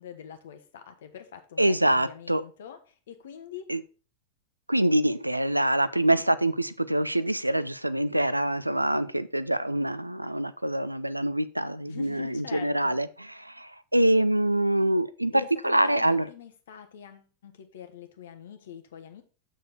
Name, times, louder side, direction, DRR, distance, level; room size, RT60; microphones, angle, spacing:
voice 1, 0.0-3.7 11.9-13.0 15.3-19.2, left 9 dB, 60° left, 1.1 m, -44 dB
voice 2, 1.6-2.4 3.7-3.8 4.7-13.1 13.4-16.3, right 1 dB, 85° right, 0.4 m, -25 dB
7.1 x 6.3 x 4.1 m
figure-of-eight pair, 90°, 0 cm